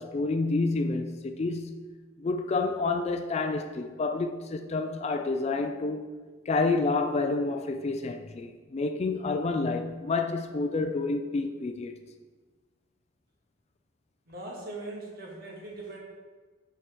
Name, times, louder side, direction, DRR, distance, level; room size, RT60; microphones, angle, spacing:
voice 1, 0.0-1.7 2.2-6.1 6.5-12.0, left 3 dB, 35° left, 0.3 m, -29 dB
voice 2, 14.3-16.0, right 2 dB, 50° right, 1.5 m, -40 dB
9.1 x 4.8 x 3.0 m
head